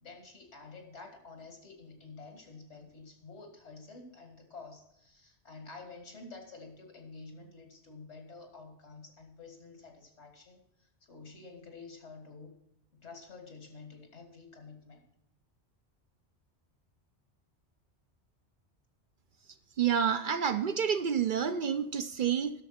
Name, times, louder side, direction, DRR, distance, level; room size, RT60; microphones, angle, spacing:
voice 1, 0.0-12.6 12.9-15.0, left 4 dB, 85° left, 4 dB, 2.3 m, -50 dB
voice 2, 19.8-22.5, right 8 dB, 60° right, 10 dB, 0.6 m, -29 dB
11.5 x 6.7 x 5.7 m, 0.77 s
omnidirectional pair, 1.1 m